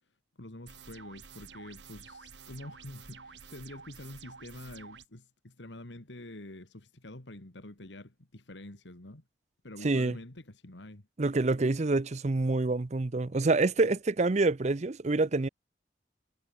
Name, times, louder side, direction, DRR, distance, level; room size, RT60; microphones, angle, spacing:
voice 1, 0.0-9.2 9.6-11.1, left 1 dB, 85° left, 2.3 m, -47 dB
sound 1, 0.7-5.1, right 5 dB, 80° right, 2.6 m, -50 dB
voice 2, 9.8-10.2 11.2-15.5, right 3 dB, 40° right, 0.6 m, -27 dB
head